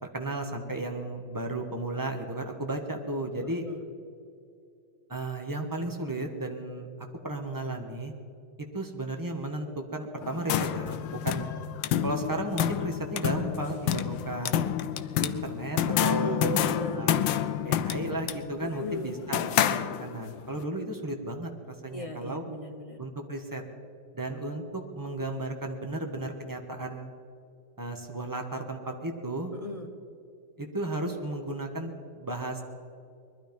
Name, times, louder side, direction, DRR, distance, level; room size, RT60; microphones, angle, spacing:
voice 1, 0.0-3.6 5.1-6.9 7.2-8.1 8.7-11.5 12.0-14.5 15.2-16.6 16.9-17.1 17.6-22.4 23.0-23.6 24.1-27.1 27.8-29.5 30.6-32.6, right 2 dB, 15° right, 3 dB, 1.1 m, -34 dB
voice 2, 3.4-3.8 15.8-17.0 18.6-19.1 21.9-23.0 29.5-29.9, left 2 dB, 30° left, 5 dB, 0.6 m, -37 dB
sound 1, 10.2-20.4, left 10 dB, 90° left, 1.3 m, -29 dB
20.5 x 12.5 x 5.3 m, 2.5 s
omnidirectional pair, 2.0 m